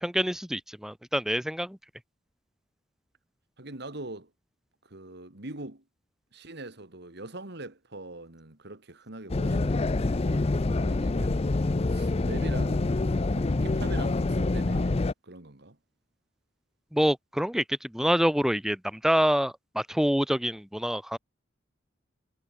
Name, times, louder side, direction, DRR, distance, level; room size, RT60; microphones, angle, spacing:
voice 1, 0.0-1.8 16.9-21.2, equal, ahead, 1.1 m, -26 dB
voice 2, 3.6-4.3 4.8-5.8 6.3-11.4 11.9-13.0 13.3-15.8, right 2 dB, 60° right, 2.6 m, -42 dB
sound 1, 9.3-15.1, left 2 dB, 30° left, 0.5 m, -26 dB
head